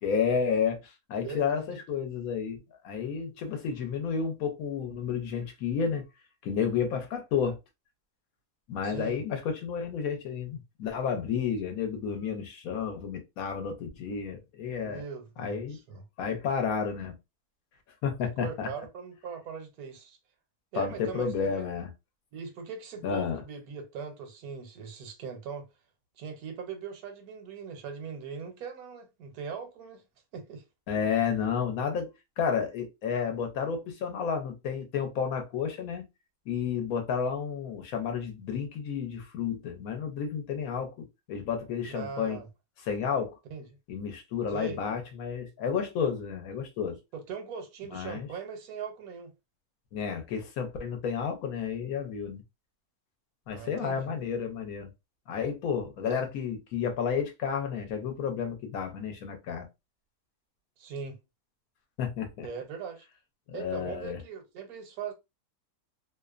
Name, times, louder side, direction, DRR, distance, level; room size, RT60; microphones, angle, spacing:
voice 1, 0.0-6.0 6.4-7.6 8.7-15.0 15.4-15.8 16.2-17.1 18.0-18.7 20.7-21.9 23.0-23.4 30.9-32.1 32.4-36.0 36.5-42.4 42.9-43.4 43.9-47.0 47.9-48.3 49.9-52.4 53.5-54.9 55.3-59.7 62.0-62.5 63.5-64.2, left 6 dB, 70° left, 1.1 m, -31 dB
voice 2, 1.2-1.8 8.8-9.2 14.8-16.0 18.2-20.2 20.7-21.7 22.3-25.7 26.2-30.0 30.3-30.6 41.9-42.5 43.5-43.7 44.5-44.8 47.1-49.3 53.5-54.2 56.0-56.3 60.8-61.2 62.4-63.1 63.5-65.1, right 6 dB, 80° right, 1.2 m, -40 dB
2.8 x 2.0 x 2.3 m
omnidirectional pair, 1.6 m